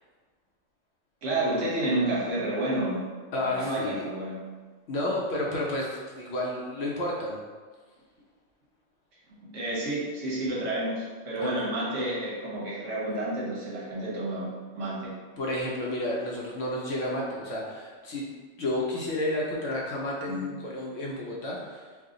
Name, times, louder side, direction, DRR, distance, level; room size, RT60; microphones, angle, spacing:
voice 1, 1.2-3.1 3.4-4.4 9.4-15.1 20.3-20.4, right 1 dB, 75° right, -6 dB, 1.2 m, -30 dB
voice 2, 3.3-4.1 4.9-7.4 11.4-11.6 15.4-18.3 18.6-21.8, left 1 dB, 65° left, -3 dB, 0.8 m, -31 dB
2.7 x 2.4 x 3.6 m, 1.4 s
omnidirectional pair, 1.3 m